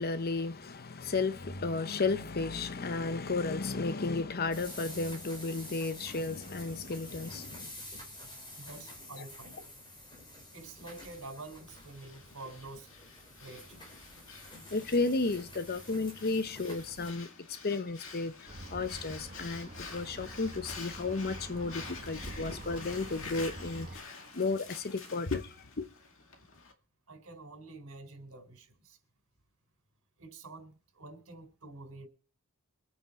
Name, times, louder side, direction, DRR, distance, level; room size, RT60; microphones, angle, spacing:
voice 1, 0.0-7.7 14.7-25.9, left 3 dB, 45° left, 0.8 m, -33 dB
sound 1, 4.5-17.1, left 1 dB, 20° left, 4.8 m, -49 dB
voice 2, 8.5-9.6 10.5-12.9 13.4-13.8 27.1-29.0 30.2-32.1, right 2 dB, 80° right, 4.3 m, -48 dB
Breathing, 11.7-26.7, left 4 dB, 65° left, 2.2 m, -49 dB
sound 2, 18.5-24.0, right 1 dB, 40° right, 1.8 m, -46 dB
24.0 x 9.3 x 4.2 m
head